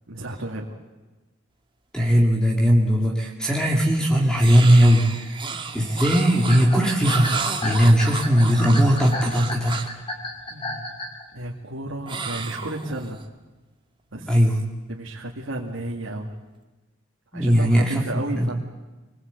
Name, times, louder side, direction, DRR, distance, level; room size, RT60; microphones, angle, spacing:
voice 1, 0.1-0.8 10.5-11.0 11.3-13.2 14.1-14.4 14.9-16.3 17.3-18.6, right 1 dB, 80° right, -1 dB, 2.3 m, -33 dB
voice 2, 1.9-5.4 5.7-9.8 14.3-14.6 17.3-18.5, equal, 5° left, 0 dB, 2.5 m, -19 dB
sound 1, 4.4-10.0 12.1-13.2, right 5 dB, 25° right, 1.8 m, -32 dB
sound 2, 6.5-11.2, left 1 dB, 30° left, 4.7 m, -32 dB
26.0 x 21.0 x 8.2 m, 1.2 s
head